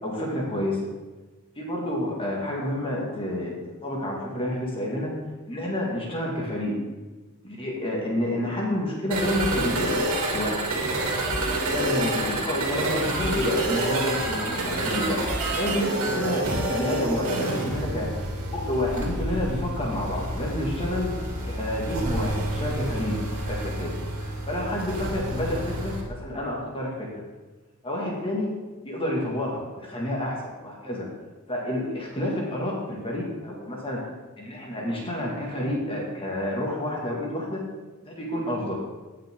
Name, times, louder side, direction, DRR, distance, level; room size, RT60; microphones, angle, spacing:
voice 1, 0.0-0.8 1.6-5.1 5.5-6.8 7.4-10.7 11.2-18.1 18.5-21.1 21.4-23.2 23.4-27.2 27.8-28.5 28.8-31.1 31.5-34.1 34.4-37.6 38.0-38.8, left 1 dB, 25° left, -2 dB, 1.9 m, -29 dB
sound 1, 9.1-26.0, right 1 dB, 80° right, 2.5 m, -28 dB
16.5 x 5.8 x 3.6 m, 1.3 s
head